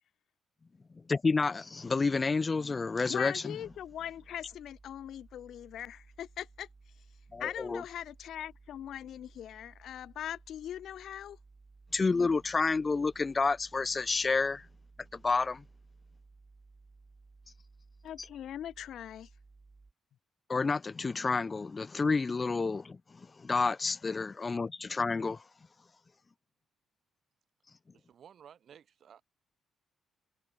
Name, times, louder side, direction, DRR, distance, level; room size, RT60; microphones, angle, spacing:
voice 1, 1.1-3.6 7.3-7.8 11.9-14.7 15.1-15.6 20.5-23.0 23.4-25.4, left 4 dB, 30° left, 0.4 m, -29 dB
voice 2, 3.1-6.7 7.4-11.4 18.0-19.3, left 10 dB, 70° left, 0.9 m, -41 dB
sound 1, 3.6-19.9, right 3 dB, 25° right, 2.6 m, -58 dB
voice 3, 27.9-29.2, right 8 dB, 60° right, 3.1 m, -55 dB
cardioid pair, 90°, 0 cm